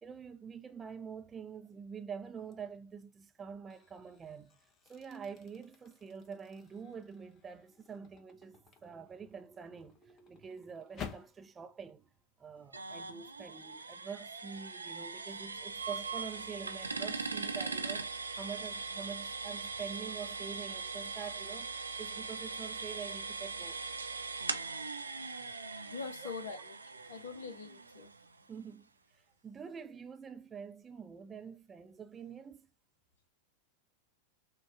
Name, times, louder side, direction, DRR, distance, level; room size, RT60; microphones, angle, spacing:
voice 1, 0.0-4.6 4.8-12.1 12.4-18.1 18.4-23.8 26.2-26.3 28.5-32.7, right 6 dB, 20° right, 0.5 m, -46 dB
sound 1, 2.5-2.8 3.4-11.4, left 7 dB, 30° left, 0.8 m, -52 dB
sound 2, 12.7-28.4, right 4 dB, 75° right, 0.5 m, -40 dB
voice 2, 25.9-26.7 27.1-28.1, left 5 dB, 60° left, 0.8 m, -43 dB
6.1 x 2.3 x 3.5 m
figure-of-eight pair, 90°, 0 cm